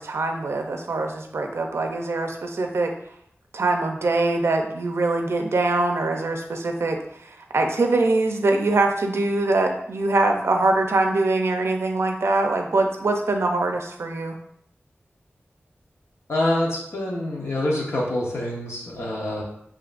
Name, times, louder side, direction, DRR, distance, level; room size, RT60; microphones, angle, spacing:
voice 1, 0.0-2.9 3.5-14.3, right 2 dB, 90° right, 3 dB, 0.6 m, -23 dB
voice 2, 16.3-19.4, left 1 dB, 85° left, -3 dB, 1.0 m, -26 dB
7.4 x 2.7 x 2.5 m, 0.71 s
wide cardioid pair, 80°, 4 cm